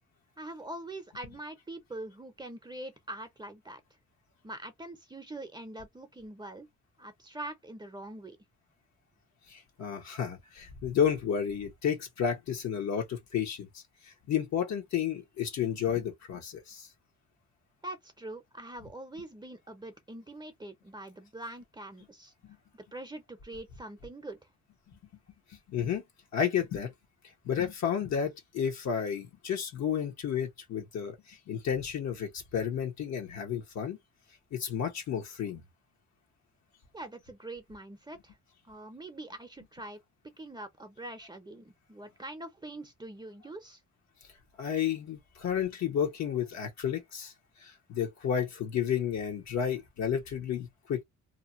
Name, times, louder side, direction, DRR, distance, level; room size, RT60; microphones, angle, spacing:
voice 1, 0.4-3.8 4.4-6.7 7.0-8.4 17.8-22.3 22.7-24.4 36.9-38.4 38.6-40.0 40.4-43.8, right 1 dB, 15° right, 0.7 m, -43 dB
voice 2, 9.5-16.9 22.4-22.6 24.9-25.0 25.7-26.0 26.3-26.9 27.4-34.0 34.5-35.6 44.6-47.3 47.6-51.0, left 8 dB, 65° left, 1.1 m, -32 dB
2.8 x 2.2 x 2.6 m
cardioid pair, 90°, 30 cm